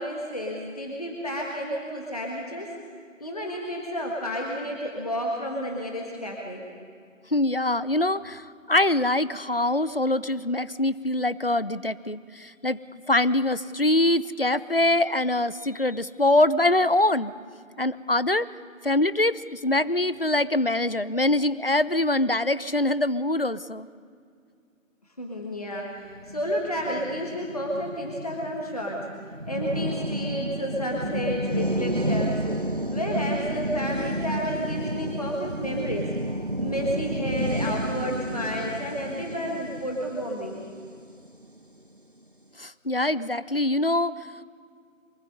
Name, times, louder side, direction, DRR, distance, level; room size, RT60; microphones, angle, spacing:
voice 1, 0.0-2.7 3.2-6.6 25.2-29.1 29.5-32.6 32.9-36.2 36.6-40.6, equal, 30° left, -1 dB, 1.5 m, -31 dB
voice 2, 7.3-12.8 13.1-17.3 17.8-18.5 18.8-23.9 42.6-44.1, left 1 dB, 45° left, 18 dB, 0.5 m, -24 dB
sound 1, 26.1-41.6, right 1 dB, 40° right, 0.6 m, -31 dB
24.0 x 24.0 x 5.4 m, 2.2 s
figure-of-eight pair, 175°, 40 cm